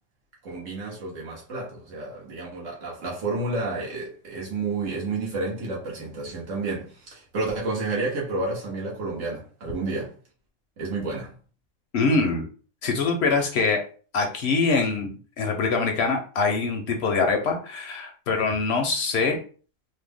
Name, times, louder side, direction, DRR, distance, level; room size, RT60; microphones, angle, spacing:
voice 1, 0.4-10.1 10.8-11.3, right 3 dB, 75° right, 1.6 m, -30 dB
voice 2, 11.9-12.5 12.8-13.8 14.1-19.4, left 4 dB, 65° left, 0.8 m, -24 dB
3.2 x 2.1 x 3.4 m
omnidirectional pair, 1.4 m